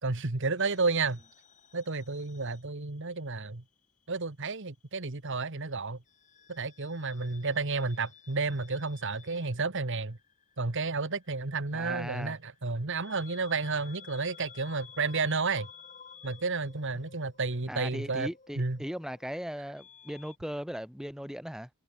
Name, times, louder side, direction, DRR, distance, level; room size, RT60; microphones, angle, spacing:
voice 1, 0.0-1.2 1.7-3.6 4.1-6.0 6.5-10.2 10.6-15.7 16.2-18.3 18.6-18.8, right 4 dB, 60° right, 1.5 m, -31 dB
sound 1, 0.6-3.4 3.7-4.9 6.1-20.4, left 7 dB, 35° left, 5.4 m, -55 dB
voice 2, 11.7-12.4 17.7-21.7, equal, 5° right, 2.9 m, -38 dB
head